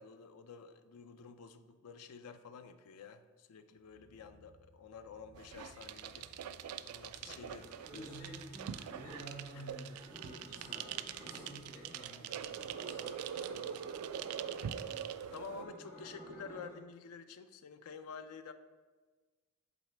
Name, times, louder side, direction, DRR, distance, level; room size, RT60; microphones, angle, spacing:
voice 1, 0.0-6.3 6.8-8.1 9.5-9.6 13.4-13.8 15.3-18.5, left 5 dB, 85° left, 10 dB, 0.4 m, -50 dB
sound 1, 3.8-9.1, left 1 dB, 10° left, 1.3 m, -64 dB
sound 2, 5.3-15.6, right 9 dB, 80° right, 0.3 m, -43 dB
sound 3, 7.2-9.4 9.9-12.0 12.3-16.8, right 1 dB, 10° right, 1.2 m, -54 dB
voice 2, 7.8-13.3, right 1 dB, 55° left, -8 dB, 1.8 m, -51 dB
7.6 x 4.0 x 3.3 m, 1.3 s
head